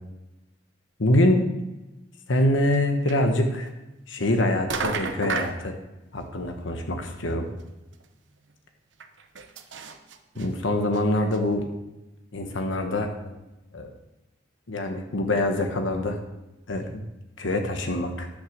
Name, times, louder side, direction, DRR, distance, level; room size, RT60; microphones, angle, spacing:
voice 1, 1.0-1.4 2.3-3.7 4.1-5.7 6.1-7.5 10.4-11.6 12.3-13.4 13.7-13.9 14.7-16.2 16.7-17.0 17.4-18.3, left 1 dB, 90° left, 4 dB, 1.2 m, -24 dB
sound 1, 2.7-2.8 3.1-3.2 4.2-4.4 4.7-5.6 7.1-7.2 7.6-7.7 7.9-8.0 9.0-10.5 10.9-11.0 11.3-11.4, right 4 dB, 75° right, 0.9 m, -31 dB
10.0 x 6.4 x 6.5 m, 1.0 s
head